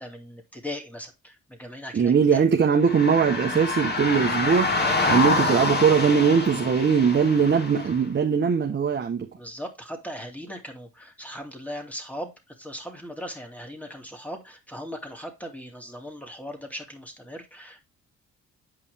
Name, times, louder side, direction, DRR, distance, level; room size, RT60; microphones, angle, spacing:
voice 1, 0.0-2.4 4.8-5.1 9.3-17.8, equal, 5° left, 2.5 m, -38 dB
voice 2, 1.9-4.7 5.1-9.3, right 6 dB, 35° right, 1.1 m, -21 dB
sound 1, 2.8-8.0, left 3 dB, 35° left, 2.5 m, -26 dB
8.7 x 5.2 x 3.5 m
cardioid pair, 90°, 30 cm